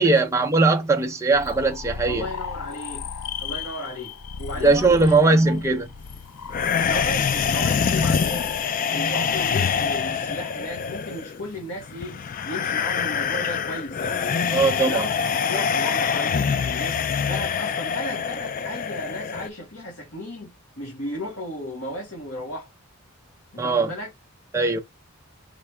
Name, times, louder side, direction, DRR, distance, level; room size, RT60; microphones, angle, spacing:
voice 1, 0.0-2.3 4.6-5.9 14.5-15.1 15.5-15.7 23.6-23.9 24.5-24.8, right 3 dB, 15° right, 0.7 m, -19 dB
sound 1, 1.3-11.0, left 6 dB, 90° left, 0.5 m, -37 dB
voice 2, 2.1-3.1 3.4-5.6 6.9-8.5 8.9-14.2 14.8-22.7 23.5-24.1, left 1 dB, 60° left, 1.9 m, -35 dB
sound 2, 6.5-19.5, left 6 dB, 35° left, 0.3 m, -25 dB
4.8 x 3.3 x 3.3 m
head